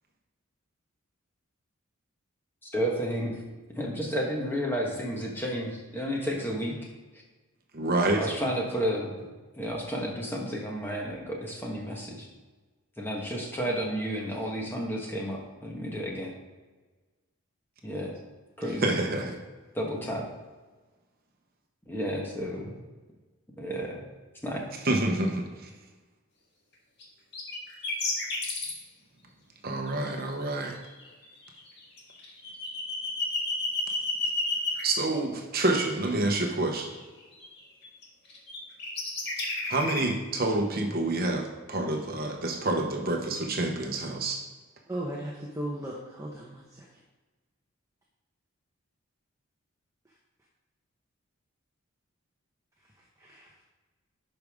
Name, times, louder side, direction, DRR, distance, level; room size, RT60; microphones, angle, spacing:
voice 1, 2.6-3.4 3.7-6.8 8.2-9.3 9.5-12.3 13.0-16.3 17.8-18.1 18.6-18.9 19.7-20.2 21.9-22.7 23.6-24.0 24.4-24.6, equal, 10° left, -2 dB, 1.3 m, -32 dB
voice 2, 7.7-8.2 18.8-19.4 24.8-25.7 29.6-30.8 34.8-36.9 39.7-44.4, right 2 dB, 45° right, 2 dB, 0.9 m, -28 dB
sound 1, 27.0-27.1 27.3-28.7 29.9-30.3 30.6-34.8 35.7-37.0 37.4-38.0 38.3-40.0, left 3 dB, 50° left, 1.8 m, -31 dB
voice 3, 44.9-46.9 53.2-53.5, right 1 dB, 15° right, -3 dB, 0.9 m, -36 dB
11.0 x 5.2 x 3.6 m, 1.3 s
head